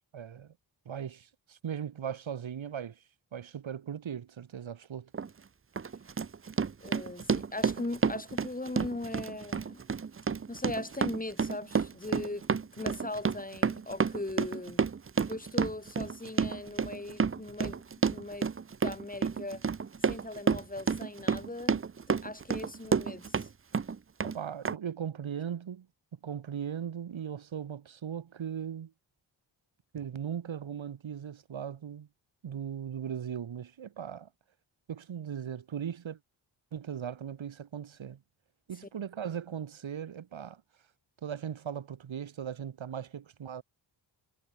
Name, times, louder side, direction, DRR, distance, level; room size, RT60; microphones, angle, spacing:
voice 1, 0.1-0.5 0.9-3.0 3.3-5.1 24.2-25.9 26.2-28.9 29.9-32.1 32.4-34.3 34.9-36.2 36.7-38.2 38.7-40.6 41.2-43.6, right 8 dB, 85° right, 3.7 m, -38 dB
Run, 5.1-5.3 5.8-23.5 23.7-24.4 24.6-24.7, right 6 dB, 30° right, 0.7 m, -30 dB
voice 2, 6.8-9.9 10.5-14.8 15.2-18.5 18.8-19.6 20.0-21.8 22.1-23.5, left 2 dB, 20° left, 3.1 m, -39 dB
wide cardioid pair, 95°, 45 cm